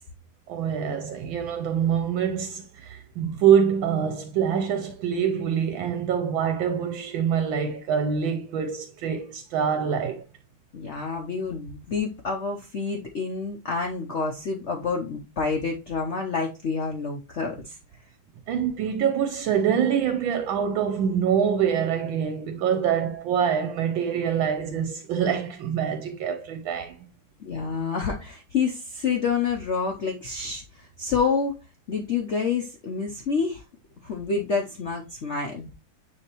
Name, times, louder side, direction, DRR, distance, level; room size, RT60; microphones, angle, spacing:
voice 1, 0.5-10.2 18.5-27.0, right 8 dB, 75° right, 1.3 m, -25 dB
voice 2, 10.7-17.8 27.4-31.6 31.9-33.6 34.0-35.7, left 5 dB, 80° left, 0.6 m, -28 dB
9.7 x 3.4 x 3.0 m
omnidirectional pair, 2.3 m